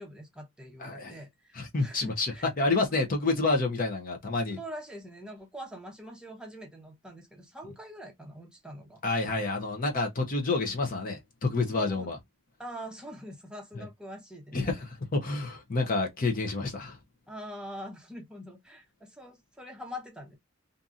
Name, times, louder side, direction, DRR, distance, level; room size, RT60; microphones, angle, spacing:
voice 1, 0.0-2.5 2.9-3.1 4.5-9.0 11.7-12.1 12.6-14.8 17.3-20.4, equal, 5° right, 0.7 m, -44 dB
voice 2, 0.8-1.1 1.5-2.3 2.6-4.6 9.0-12.2 13.8-13.9 14.5-17.0, left 3 dB, 45° left, 0.6 m, -29 dB
2.6 x 2.6 x 2.4 m
head